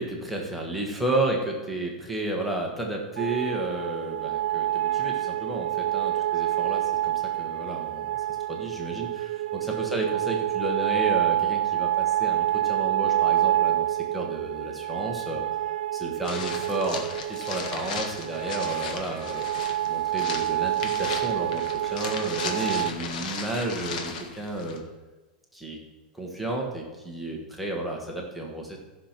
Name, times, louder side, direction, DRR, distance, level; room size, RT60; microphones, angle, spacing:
voice 1, 0.0-8.1 8.5-15.4 15.9-19.5 19.9-24.8 25.5-25.8 26.1-28.8, right 2 dB, ahead, -2 dB, 1.3 m, -32 dB
sound 1, 3.2-22.9, right 13 dB, 80° right, 0.3 m, -27 dB
sound 2, 16.2-24.8, left 5 dB, 65° left, 1.6 m, -36 dB
14.0 x 6.0 x 5.9 m, 1.2 s
supercardioid pair, 170°, 5 cm